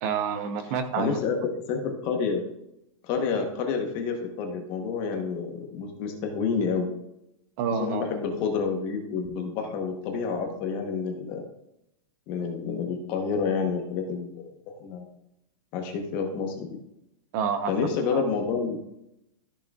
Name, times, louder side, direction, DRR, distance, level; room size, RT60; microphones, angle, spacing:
voice 1, 0.0-1.2 7.6-8.1 17.3-18.2, right 6 dB, 30° right, 9 dB, 0.8 m, -29 dB
voice 2, 1.0-1.4 1.7-2.4 3.1-6.9 7.7-11.4 12.3-14.5 14.8-15.1 15.7-16.7 17.7-18.8, left 5 dB, 25° left, 4 dB, 1.0 m, -29 dB
13.0 x 6.8 x 2.3 m, 0.83 s
supercardioid pair, 175°, 17 cm